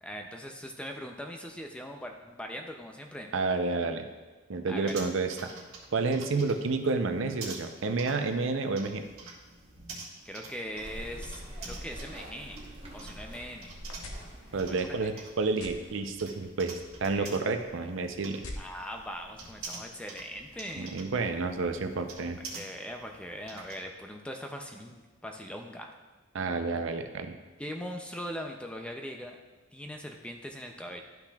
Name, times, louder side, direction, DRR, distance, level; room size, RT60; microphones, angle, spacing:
voice 1, 0.0-3.3 4.7-5.0 10.2-12.6 12.9-13.7 14.7-15.3 17.0-17.3 18.6-21.0 22.5-25.9 27.6-29.4 29.7-31.0, equal, 5° left, 3 dB, 0.4 m, -41 dB
voice 2, 3.3-4.1 4.5-5.4 5.9-9.0 14.5-18.4 20.8-22.4 26.3-27.4, right 3 dB, 60° right, 7 dB, 0.5 m, -30 dB
sound 1, 4.8-23.8, right 3 dB, 90° right, 1.5 m, -48 dB
sound 2, 10.8-15.9, equal, 25° right, 1.0 m, -45 dB
sound 3, 12.4-22.6, left 1 dB, 90° left, 0.9 m, -50 dB
12.0 x 5.8 x 2.3 m, 1.3 s
head